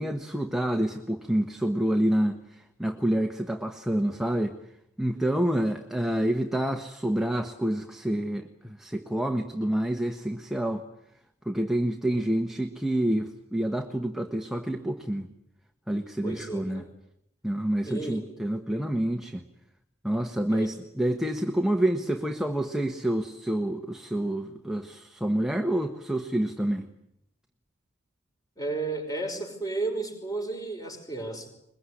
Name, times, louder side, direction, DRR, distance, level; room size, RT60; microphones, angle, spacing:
voice 1, 0.0-4.6 5.0-10.8 11.4-15.3 15.9-16.9 17.4-19.4 20.0-26.9, right 1 dB, ahead, 4 dB, 1.2 m, -28 dB
voice 2, 16.2-16.9 17.8-18.3 20.5-20.8 28.6-31.5, right 3 dB, 15° left, 4 dB, 5.6 m, -33 dB
22.5 x 22.0 x 10.0 m, 0.78 s
head